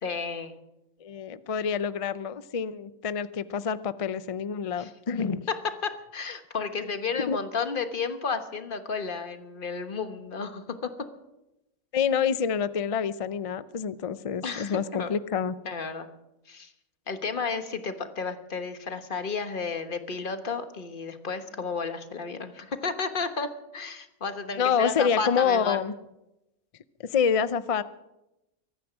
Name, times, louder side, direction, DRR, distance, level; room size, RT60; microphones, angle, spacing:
voice 1, 0.0-0.5 4.8-4.9 5.8-10.9 14.4-15.1 15.6-16.1 16.5-16.7 17.1-25.8, left 5 dB, 40° left, 8 dB, 1.4 m, -32 dB
voice 2, 1.0-5.5 7.3-7.4 11.9-15.5 24.6-25.9 27.0-27.8, left 7 dB, 60° left, 14 dB, 0.3 m, -27 dB
24.0 x 9.9 x 6.1 m, 0.91 s
omnidirectional pair, 1.4 m